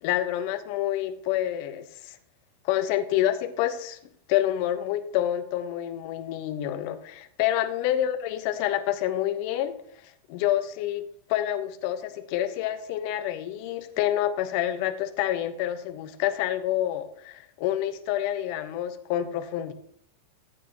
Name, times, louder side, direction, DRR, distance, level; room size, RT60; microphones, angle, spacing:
voice 1, 0.0-2.2 2.6-4.0 4.3-9.7 10.3-11.0 11.3-19.7, left 12 dB, 45° left, 10 dB, 1.2 m, -28 dB
14.5 x 8.7 x 3.1 m, 0.65 s
figure-of-eight pair, 90°, 0 cm